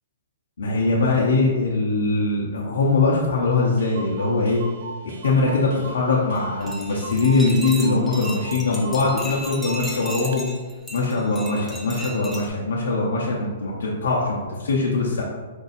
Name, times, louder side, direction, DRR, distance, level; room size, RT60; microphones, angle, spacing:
voice 1, 0.6-4.6 5.2-10.4 10.9-15.4, left 3 dB, 90° left, -3 dB, 0.8 m, -22 dB
Clock, 3.2-3.3 3.5-3.6 3.8-10.4, right 3 dB, 65° right, 0.6 m, -38 dB
sound 1, 6.4-12.5, equal, 5° left, 0.6 m, -36 dB
4.6 x 2.6 x 4.0 m, 1.3 s
hypercardioid pair, 150°, 0 cm